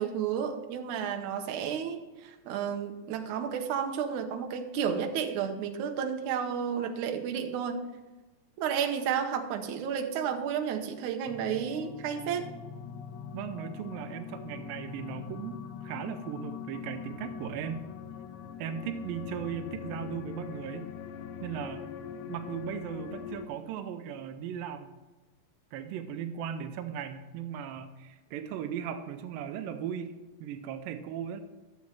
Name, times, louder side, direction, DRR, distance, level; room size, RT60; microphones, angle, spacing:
voice 1, 0.0-7.8 8.6-12.5, right 7 dB, 70° right, 5 dB, 2.1 m, -32 dB
sound 1, 11.2-23.5, left 8 dB, 80° left, 1.8 m, -42 dB
voice 2, 13.3-17.8 18.6-20.9 21.4-21.9 22.3-25.0 25.7-30.1 30.4-31.4, right 8 dB, 90° right, 8 dB, 2.4 m, -37 dB
12.5 x 7.3 x 4.6 m, 1.2 s
omnidirectional pair, 4.1 m